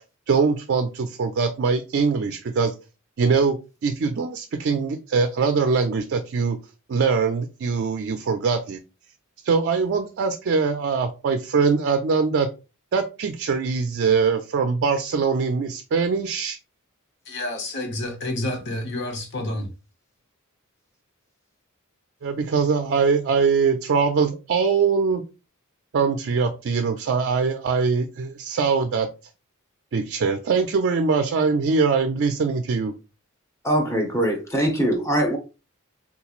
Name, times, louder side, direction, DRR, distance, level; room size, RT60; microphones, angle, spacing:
voice 1, 0.3-2.7 3.2-3.6 3.8-6.6 6.9-8.8 9.4-12.5 12.9-16.6 22.2-25.2 25.9-29.1 29.9-32.9, right 5 dB, 55° right, 0.4 m, -22 dB
voice 2, 17.3-19.7, left 1 dB, 55° left, 0.9 m, -29 dB
voice 3, 33.6-35.4, right 1 dB, 15° left, 0.9 m, -22 dB
3.7 x 3.0 x 2.4 m
head